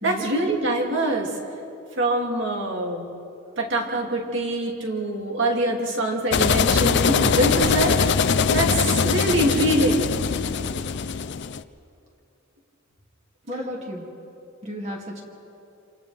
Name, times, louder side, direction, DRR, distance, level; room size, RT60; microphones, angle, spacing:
voice 1, 0.0-1.3 2.0-3.1 3.6-10.1, right 1 dB, 60° right, 0 dB, 2.7 m, -24 dB
sound 1, 6.3-11.6, left 5 dB, 55° left, 0.5 m, -22 dB
voice 2, 13.5-14.1 14.6-15.2, equal, 30° right, -2 dB, 2.4 m, -33 dB
27.5 x 27.5 x 3.5 m, 2.7 s
head